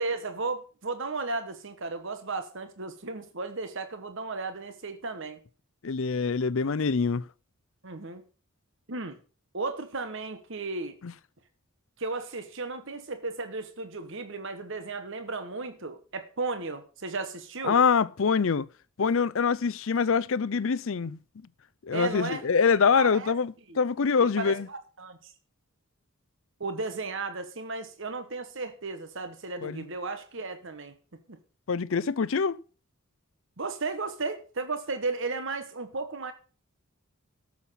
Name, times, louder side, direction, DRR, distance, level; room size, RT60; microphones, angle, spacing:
voice 1, 0.0-5.4 7.8-8.2 8.9-9.2 9.5-11.0 12.0-17.8 21.9-22.5 23.0-23.3 23.7-23.8 24.2-25.3 26.6-30.9 31.3-31.4 33.6-36.3, right 3 dB, 55° right, 1.3 m, -34 dB
voice 2, 5.8-7.2 11.0-11.1 17.6-18.7 19.0-21.2 21.8-24.7 29.6-29.8 31.7-32.6, left 5 dB, 60° left, 0.5 m, -25 dB
12.5 x 7.3 x 5.7 m
head